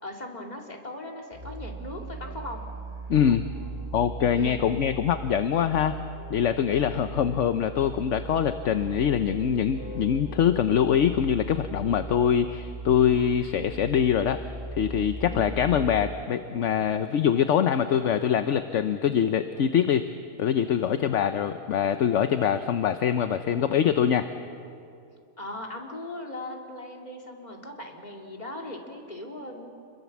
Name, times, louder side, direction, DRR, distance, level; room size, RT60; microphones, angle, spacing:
voice 1, 0.0-2.6 4.3-4.6 6.7-7.1 15.3-15.6 25.4-29.7, left 1 dB, 25° left, 1 dB, 2.7 m, -39 dB
Musical instrument, 1.3-16.3, right 3 dB, 35° right, 3.0 m, -39 dB
voice 2, 3.1-3.5 3.9-5.9 6.3-14.4 14.7-20.1 20.4-24.3, left 8 dB, 55° left, 9 dB, 1.0 m, -24 dB
27.5 x 22.0 x 7.3 m, 2.5 s
omnidirectional pair, 1.7 m